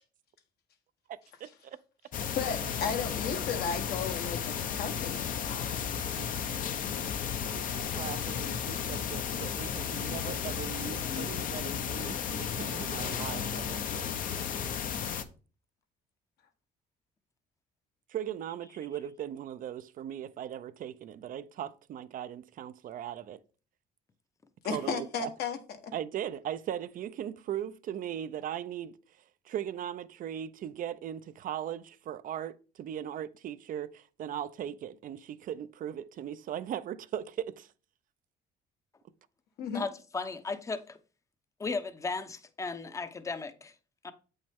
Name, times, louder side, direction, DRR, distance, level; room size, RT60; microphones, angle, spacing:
voice 1, 1.1-1.8 6.2-6.3 7.4-14.1 18.1-23.4 24.7-25.3 25.9-29.0 29.4-37.7, right 10 dB, 55° right, 0.5 m, -39 dB
sound 1, 2.1-15.2, left 7 dB, 55° left, 0.7 m, -34 dB
voice 2, 2.3-5.5 24.6-25.6 39.6-39.8, left 6 dB, 70° left, 1.3 m, -34 dB
voice 3, 39.7-41.0 41.6-43.7 44.0-44.1, left 4 dB, 20° left, 0.7 m, -36 dB
8.0 x 5.4 x 3.6 m
cardioid pair, 110°, 17 cm